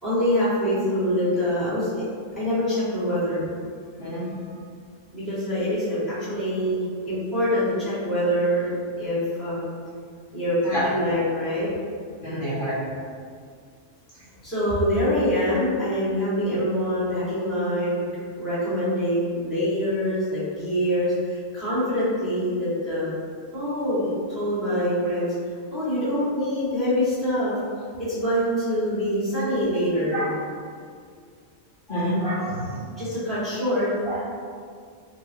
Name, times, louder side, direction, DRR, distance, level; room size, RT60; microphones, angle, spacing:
voice 1, 0.0-2.1 2.4-3.4 5.1-8.7 9.0-9.7 10.3-11.7 14.4-17.9 18.4-23.1 23.5-25.3 25.7-27.5 28.0-30.3 33.0-33.9, equal, ahead, -13 dB, 1.3 m, -25 dB
voice 2, 12.2-12.8 30.1-30.3 31.9-32.8 34.0-34.3, equal, 50° left, -12 dB, 1.0 m, -27 dB
3.2 x 2.9 x 2.6 m, 2.1 s
omnidirectional pair, 1.3 m